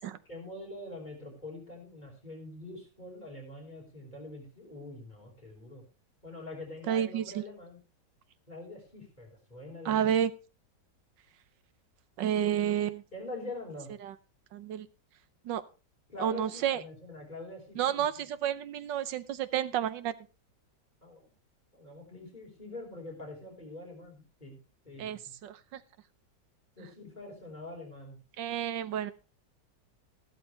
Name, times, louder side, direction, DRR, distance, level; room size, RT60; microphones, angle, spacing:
voice 1, 0.3-5.8 6.2-7.8 8.5-10.2 13.1-13.9 16.1-18.2 21.0-21.3 21.7-24.6 24.8-25.3 26.8-28.2, left 2 dB, 25° left, -1 dB, 5.3 m, -44 dB
voice 2, 6.9-7.4 9.8-10.3 12.2-13.0 14.0-14.1 14.5-14.9 15.4-15.6 16.2-16.8 17.8-20.1 25.0-25.8 28.4-29.1, right 10 dB, 90° right, 14 dB, 1.5 m, -30 dB
14.0 x 12.5 x 3.3 m, 0.32 s
omnidirectional pair, 1.9 m